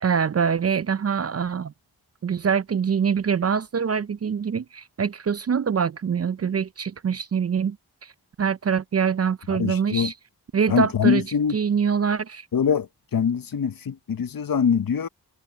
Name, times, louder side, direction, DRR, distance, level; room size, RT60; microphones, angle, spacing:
voice 1, 0.0-1.7 2.2-7.8 8.0-8.1 8.4-10.1 10.5-11.2 11.5-12.5, right 6 dB, 40° right, 0.4 m, -24 dB
voice 2, 9.5-10.1 10.7-11.6 12.5-15.1, left 7 dB, 55° left, 0.8 m, -23 dB
cardioid pair, 60°, 40 cm